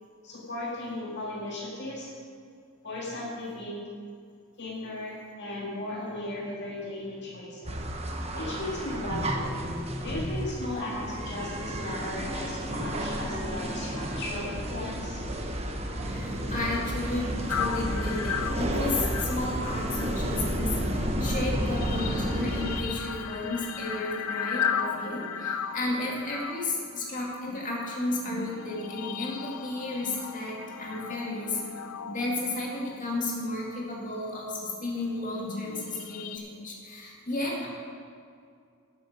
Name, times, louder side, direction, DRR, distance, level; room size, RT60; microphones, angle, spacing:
voice 1, 0.2-2.1 2.8-3.8 4.6-7.8 8.3-9.6 10.0-15.3, left 1 dB, 55° left, -4 dB, 2.1 m, -36 dB
sound 1, 7.6-22.8, equal, 30° right, 1.0 m, -31 dB
voice 2, 16.0-31.6 32.1-37.7, left 2 dB, 40° left, -3 dB, 2.2 m, -33 dB
sound 2, 17.5-34.0 34.6-36.4, left 7 dB, 90° left, 0.6 m, -36 dB
12.5 x 9.0 x 5.3 m, 2.3 s
head